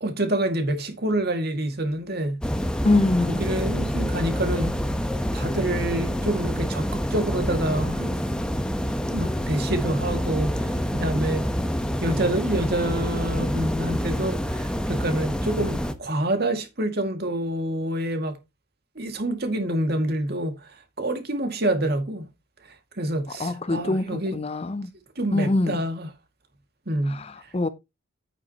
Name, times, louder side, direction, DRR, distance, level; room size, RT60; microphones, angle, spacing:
voice 1, 0.0-2.4 3.3-4.7 5.3-8.1 9.1-11.5 12.0-18.4 19.0-22.3 22.6-24.4 25.2-26.1 26.9-27.7, right 1 dB, 45° right, 2.2 m, -27 dB
sound 1, 2.4-15.9, equal, 5° left, 0.9 m, -27 dB
voice 2, 2.8-3.4 23.4-24.9 25.3-25.8 27.1-27.7, left 2 dB, 30° left, 0.5 m, -24 dB
10.0 x 9.0 x 3.0 m
head